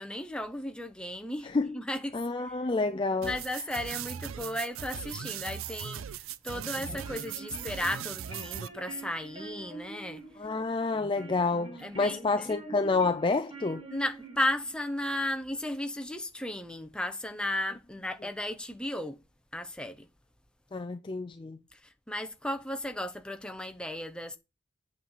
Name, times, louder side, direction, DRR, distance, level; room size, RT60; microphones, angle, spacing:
voice 1, 0.0-2.2 2.5-2.6 2.9-10.2 11.8-12.5 13.9-19.2 19.5-20.1 21.7-24.4, left 1 dB, 5° left, 0.8 m, -35 dB
voice 2, 2.1-3.3 10.4-13.8 20.7-21.6, left 3 dB, 25° left, 0.4 m, -29 dB
sound 1, 3.2-8.7, right 9 dB, 75° right, 0.5 m, -39 dB
sound 2, 6.7-14.8, right 3 dB, 25° right, 2.5 m, -46 dB
8.3 x 4.5 x 5.6 m
head